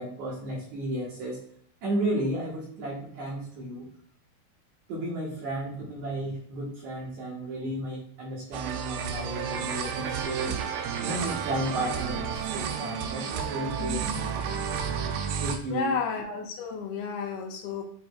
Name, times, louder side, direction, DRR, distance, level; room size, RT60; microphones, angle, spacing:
voice 1, 0.0-1.4 1.8-3.9 4.9-10.6 11.0-14.0 15.4-15.9, right 1 dB, 60° right, -4 dB, 2.3 m, -33 dB
sound 1, 8.5-15.6, right 7 dB, 80° right, 2.6 m, -31 dB
voice 2, 13.8-14.3 15.7-17.8, left 5 dB, 80° left, 3 dB, 2.4 m, -32 dB
9.3 x 4.3 x 2.3 m, 0.63 s
omnidirectional pair, 4.6 m